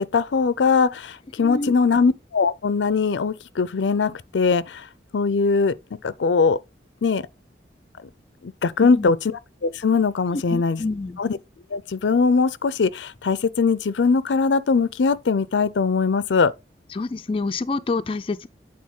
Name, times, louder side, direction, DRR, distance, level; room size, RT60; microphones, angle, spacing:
voice 1, 0.0-4.9 5.1-5.7 6.0-6.6 7.0-7.2 8.4-9.3 9.6-10.8 11.2-11.4 11.7-16.5, left 4 dB, 85° left, 0.5 m, -21 dB
voice 2, 1.4-1.7 8.8-9.1 10.3-11.2 16.9-18.5, left 3 dB, 30° left, 0.4 m, -27 dB
8.6 x 4.0 x 3.7 m
head